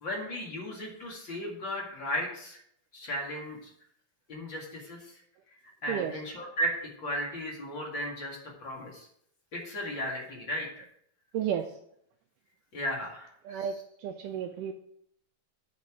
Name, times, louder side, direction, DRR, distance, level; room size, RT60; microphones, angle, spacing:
voice 1, 0.0-2.6 2.9-3.6 4.3-5.0 5.8-9.1 9.5-10.9 12.7-13.7, equal, 40° left, -2 dB, 2.2 m, -35 dB
voice 2, 11.3-11.7 13.5-13.7 14.0-14.7, right 9 dB, 90° right, 6 dB, 1.8 m, -32 dB
8.5 x 5.8 x 6.1 m, 0.71 s
omnidirectional pair, 4.3 m